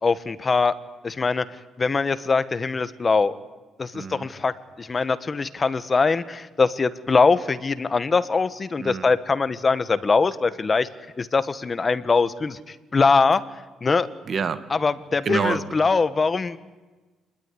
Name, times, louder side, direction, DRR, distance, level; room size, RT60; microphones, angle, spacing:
voice 1, 0.0-0.7 1.0-1.4 1.8-3.3 3.8-4.5 4.8-10.9 11.2-13.4 13.8-14.1 14.7-16.6, left 4 dB, 25° left, 14 dB, 1.3 m, -22 dB
voice 2, 3.9-4.3 8.8-9.1 14.3-14.6 15.2-15.6, right 6 dB, 45° right, 12 dB, 2.0 m, -27 dB
28.5 x 20.5 x 10.0 m, 1.2 s
cardioid pair, 130°, 0 cm